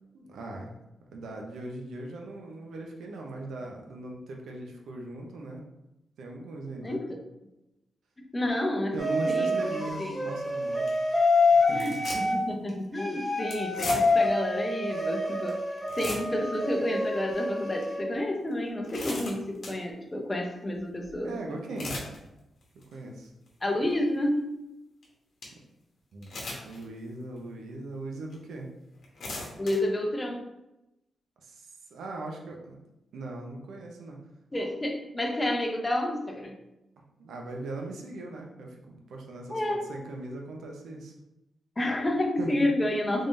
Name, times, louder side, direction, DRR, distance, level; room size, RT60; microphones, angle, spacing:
voice 1, 0.1-0.7 1.1-5.6 6.2-7.0 8.9-10.9 11.5-12.0 21.2-21.9 22.9-23.3 26.1-26.3 26.6-28.7 31.4-32.8 33.1-34.2 35.2-35.3 37.2-41.1 42.4-42.7, right 2 dB, 85° right, 1 dB, 0.6 m, -39 dB
voice 2, 6.8-7.2 8.3-8.9 9.3-9.6 10.0-10.1 11.7-15.6 16.0-21.3 23.6-24.5 29.6-30.5 34.5-36.6 39.5-39.8 41.8-43.3, left 1 dB, 20° left, 2 dB, 0.7 m, -30 dB
sound 1, 9.0-12.3 12.9-18.0, left 2 dB, ahead, 1.4 m, -27 dB
sound 2, 10.3-10.5 10.9-11.0 11.7-12.4 12.7-12.8 13.5-14.3 15.0-15.1 15.5-15.6 15.8-16.5 17.0-17.2 17.8-17.9 18.5-19.8 21.5-22.2 22.6-22.9 23.5-23.6 25.0-25.1 25.4-25.5 26.2-26.8 27.4-27.5 28.3-28.4 29.0-29.8, left 2 dB, 65° left, 1.0 m, -38 dB
3.6 x 3.4 x 2.6 m, 0.92 s
cardioid pair, 95°, 0 cm